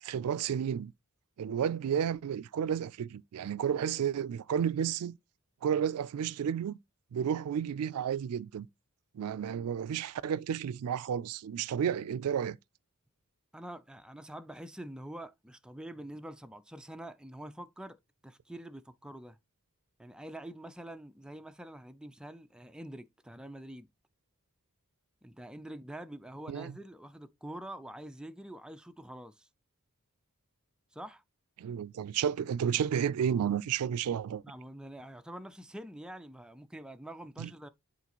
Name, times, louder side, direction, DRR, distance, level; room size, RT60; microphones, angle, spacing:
voice 1, 0.0-0.9 1.4-5.2 5.6-6.8 7.1-8.7 9.1-12.6 26.5-26.7 31.6-34.4 37.4-37.5, right 8 dB, 85° right, 0.3 m, -32 dB
voice 2, 13.5-19.4 20.0-23.9 25.2-29.5 30.9-31.2 34.4-37.7, right 1 dB, 5° right, 0.4 m, -46 dB
8.2 x 4.0 x 2.9 m
head